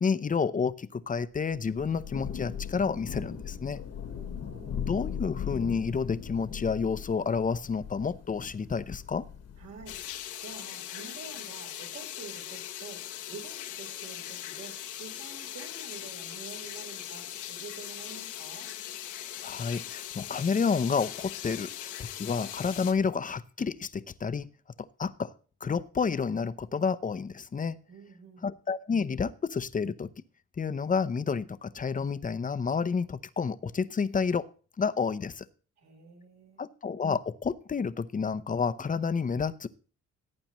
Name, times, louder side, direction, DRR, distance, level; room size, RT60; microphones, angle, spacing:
voice 1, 0.0-3.8 4.8-9.3 19.4-24.5 25.0-25.3 25.6-27.8 28.4-30.1 30.6-34.5 34.8-35.4 36.6-39.7, left 5 dB, 25° left, 14 dB, 0.7 m, -30 dB
Thunder / Rain, 1.5-10.1, left 8 dB, 55° left, 1.4 m, -39 dB
voice 2, 4.0-4.8 9.6-10.0 10.4-13.0 13.3-18.7 27.9-28.5 35.8-36.6, right 5 dB, 60° right, 2 dB, 4.1 m, -48 dB
sound 1, 9.9-22.9, left 11 dB, 80° left, 1.1 m, -40 dB
17.5 x 8.7 x 3.1 m, 0.39 s
cardioid pair, 90°, 30 cm